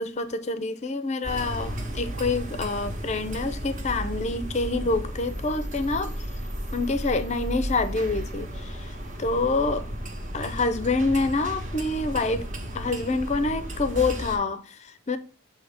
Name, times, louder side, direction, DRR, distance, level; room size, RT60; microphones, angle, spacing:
voice 1, 0.0-6.1 6.7-9.9 10.3-12.5 12.7-15.2, left 3 dB, 35° left, 0.5 m, -27 dB
sound 1, 1.2-14.4, equal, 40° right, 1.2 m, -34 dB
7.3 x 2.8 x 4.8 m
head